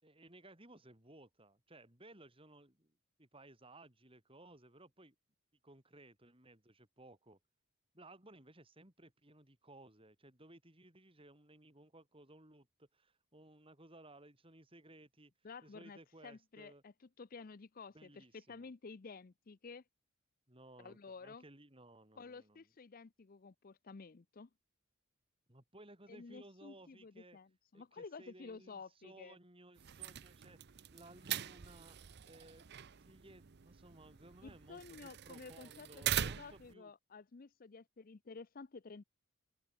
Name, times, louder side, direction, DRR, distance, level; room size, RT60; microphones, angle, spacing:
voice 1, 0.0-2.9 3.2-5.2 5.6-7.4 7.9-15.3 15.6-16.8 17.9-18.7 20.5-22.6 25.5-27.4 27.7-32.0 32.2-36.9, right 1 dB, 25° right, 3.9 m, -59 dB
voice 2, 15.4-19.8 20.8-21.4 22.2-24.5 26.1-29.4 34.4-39.0, left 4 dB, 40° left, 0.5 m, -52 dB
sound 1, 29.8-36.7, right 10 dB, 50° right, 0.6 m, -43 dB
open air
head